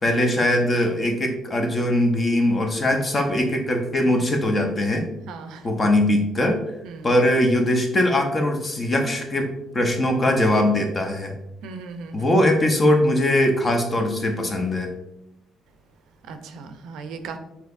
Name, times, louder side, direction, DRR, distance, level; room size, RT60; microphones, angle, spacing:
voice 1, 0.0-5.1 5.6-6.6 7.0-11.3 12.1-14.9, left 1 dB, 25° left, 3 dB, 0.6 m, -21 dB
voice 2, 5.3-5.7 6.8-7.1 11.6-12.3 16.3-17.4, right 4 dB, 85° right, 7 dB, 0.5 m, -37 dB
6.3 x 2.8 x 2.5 m, 0.87 s
cardioid pair, 155°, 0 cm